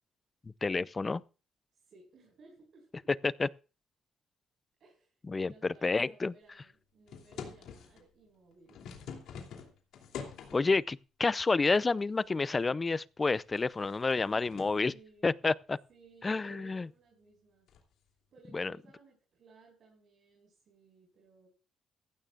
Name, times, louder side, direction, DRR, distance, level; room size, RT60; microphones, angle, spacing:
voice 1, 0.6-1.2 3.2-3.5 5.3-5.5 5.8-6.3 10.5-14.9 15.2-15.8 16.2-16.9 18.5-18.7, left 3 dB, 25° left, 0.5 m, -29 dB
voice 2, 1.7-3.1 4.8-8.8 13.9-15.3 15.9-17.7 18.3-21.5, right 4 dB, 60° right, 5.5 m, -60 dB
sound 1, 7.1-8.0 8.5-10.8 11.7-12.3 12.6-12.7 13.3-14.8 17.7-17.9, left 6 dB, 80° left, 2.9 m, -46 dB
16.0 x 15.0 x 2.5 m
cardioid pair, 90°, 0 cm